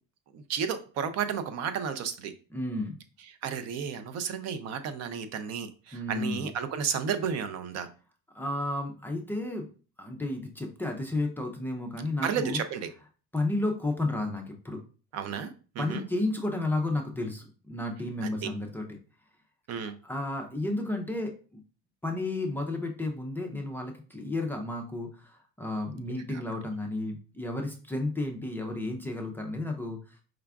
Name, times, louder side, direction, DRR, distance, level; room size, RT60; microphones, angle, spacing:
voice 1, 0.3-2.3 3.3-7.9 12.2-12.9 15.1-16.1 18.2-18.5 19.7-20.0 26.3-26.4, right 7 dB, 60° right, 10 dB, 0.5 m, -33 dB
voice 2, 2.5-3.0 5.9-6.5 8.3-9.7 10.0-12.6 13.3-14.8 15.8-18.9 20.0-21.3 22.0-30.0, left 2 dB, 5° left, 1 dB, 0.4 m, -32 dB
4.9 x 2.3 x 3.4 m, 0.37 s
cardioid pair, 155°, 30 cm